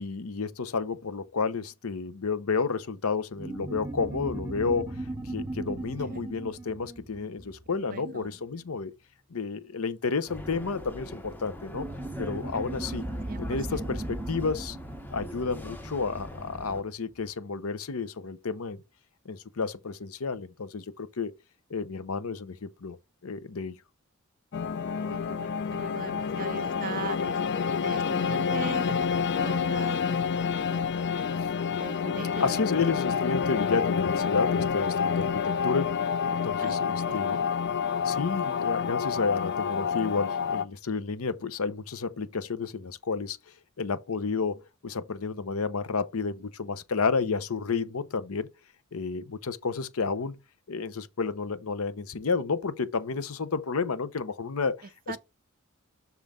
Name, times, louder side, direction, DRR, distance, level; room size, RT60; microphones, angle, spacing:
voice 1, 0.0-8.9 9.3-11.9 12.2-13.0 13.4-14.8 15.1-18.8 19.2-21.3 21.7-23.0 23.2-23.8 32.4-36.0 36.3-37.5 38.0-43.4 43.8-48.5 48.9-50.4 50.7-55.2, left 4 dB, 85° left, 0.7 m, -31 dB
sound 1, 3.4-8.3 11.7-16.6, right 1 dB, 15° right, 1.4 m, -37 dB
voice 2, 7.9-8.3 13.3-13.8 25.0-27.3 27.8-28.9 29.3-30.9 31.8-32.6 36.6-36.8 37.1-37.4 55.1-55.2, right 5 dB, 40° right, 0.6 m, -40 dB
sound 2, 10.3-16.8, equal, 10° left, 0.9 m, -42 dB
sound 3, 24.5-40.7, left 6 dB, 55° left, 0.4 m, -28 dB
6.0 x 5.3 x 3.7 m
head